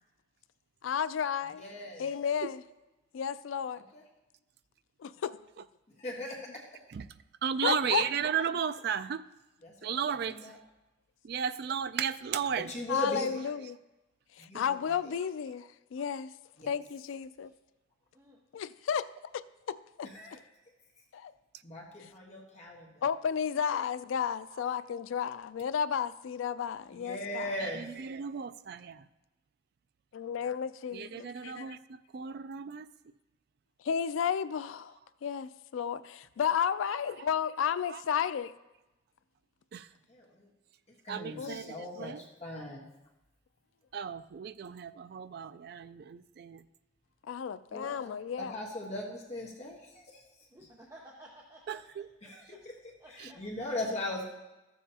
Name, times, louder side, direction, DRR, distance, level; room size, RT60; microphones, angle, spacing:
voice 1, 0.8-1.6 2.0-2.6 3.1-3.8 5.0-5.6 7.6-8.1 8.4-8.5 12.9-13.8 14.4-16.3 16.7-17.5 18.5-19.1 19.3-20.1 21.1-21.3 23.0-27.5 30.1-31.8 33.8-38.6 41.4-41.7 47.3-48.6, left 7 dB, 90° left, 0.3 m, -33 dB
voice 2, 1.5-2.1 3.9-4.0 6.0-6.6 7.7-7.9 9.6-10.6 12.6-13.5 14.4-14.9 16.6-16.7 20.0-20.4 21.6-22.9 26.9-27.9 40.1-40.5 41.0-42.9 47.7-48.1 48.4-50.2 52.2-54.2, left 1 dB, 35° left, 1.3 m, -39 dB
voice 3, 7.4-9.2 9.8-10.4 11.2-12.7 27.6-29.0 30.9-31.8 32.1-32.9 37.9-38.0 39.7-39.9 41.1-42.2 43.9-46.6 51.7-52.1 53.2-53.3, right 7 dB, 55° right, 0.3 m, -34 dB
voice 4, 50.5-51.8 52.2-52.6 53.0-53.7, right 1 dB, 15° right, 0.9 m, -54 dB
13.5 x 7.2 x 2.9 m
head